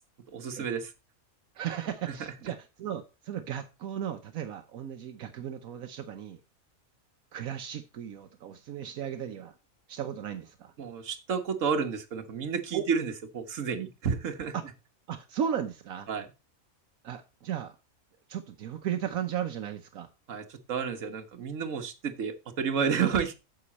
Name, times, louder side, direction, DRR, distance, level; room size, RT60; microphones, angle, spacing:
voice 1, 0.3-0.9 10.8-14.5 16.1-16.3 20.3-23.3, right 6 dB, 65° right, 6 dB, 1.6 m, -31 dB
voice 2, 1.5-6.4 7.3-9.6 9.9-10.7 12.7-12.9 14.5-14.6 15.1-16.1 17.0-17.7 18.3-20.1, right 9 dB, 80° right, 6 dB, 1.3 m, -35 dB
9.7 x 7.0 x 4.2 m, 0.28 s
omnidirectional pair, 1.5 m